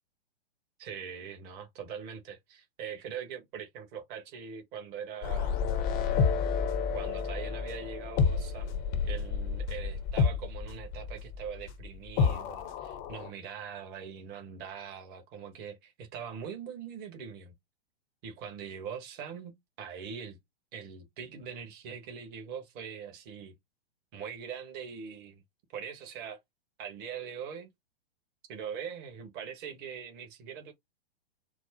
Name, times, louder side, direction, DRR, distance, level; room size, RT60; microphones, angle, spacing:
voice 1, 0.8-5.6 6.9-17.5 18.2-20.4 20.7-23.5 24.1-25.4 25.7-26.4 26.8-27.7 28.5-30.7, right 7 dB, 30° right, 1.2 m, -42 dB
sound 1, 5.2-13.3, left 5 dB, 25° left, 0.6 m, -30 dB
4.6 x 2.0 x 4.1 m
hypercardioid pair, 125°, 32 cm